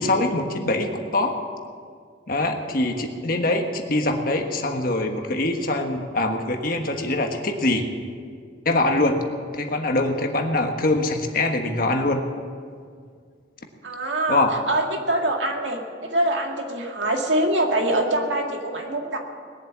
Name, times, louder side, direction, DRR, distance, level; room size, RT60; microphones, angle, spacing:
voice 1, 0.0-1.4 2.3-7.9 8.6-9.2 9.5-12.2 14.3-14.5, left 2 dB, 50° left, 4 dB, 1.4 m, -23 dB
voice 2, 13.8-19.2, right 1 dB, 85° right, 2 dB, 2.0 m, -24 dB
20.5 x 7.5 x 8.6 m, 2.1 s
head